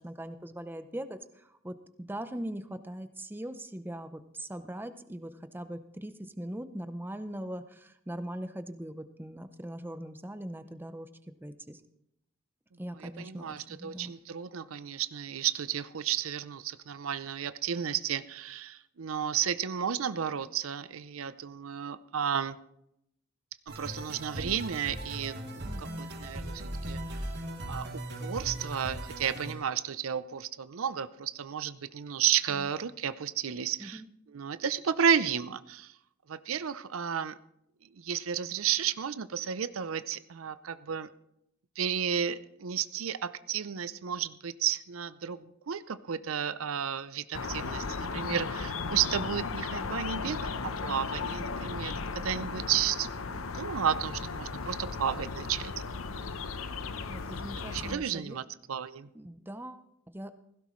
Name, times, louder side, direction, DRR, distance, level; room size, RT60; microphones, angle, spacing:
voice 1, 0.0-11.1 11.4-11.8 12.8-14.1 25.6-26.1 33.8-34.0 52.6-52.7 56.2-56.3 57.1-58.4 59.1-60.3, right 1 dB, 10° right, 10 dB, 0.7 m, -41 dB
voice 2, 13.0-22.6 23.8-27.3 27.7-34.0 34.3-35.9 36.3-37.4 38.0-41.1 41.8-53.1 53.5-55.7 57.6-59.1, right 8 dB, 85° right, 14 dB, 0.6 m, -32 dB
sound 1, 23.7-29.5, right 1 dB, 55° right, 2.7 m, -38 dB
sound 2, 47.3-58.0, left 4 dB, 85° left, 0.8 m, -36 dB
16.5 x 16.0 x 3.2 m, 0.78 s
head